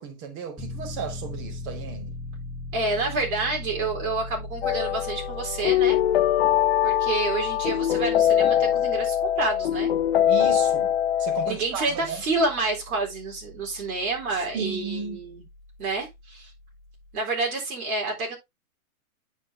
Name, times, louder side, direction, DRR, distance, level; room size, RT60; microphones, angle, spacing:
voice 1, 0.0-2.1 10.2-10.9 11.2-12.2 14.5-15.2, right 6 dB, 30° right, 1.7 m, -34 dB
Piano, 0.6-17.2, left 2 dB, ahead, 1.2 m, -40 dB
voice 2, 2.7-6.0 6.8-9.9 11.5-15.4 15.8-16.5 17.1-18.4, right 3 dB, 70° right, 4.1 m, -28 dB
sound 1, 4.6-11.5, left 11 dB, 45° left, 0.6 m, -22 dB
9.8 x 6.1 x 2.7 m
hypercardioid pair, 150°, 44 cm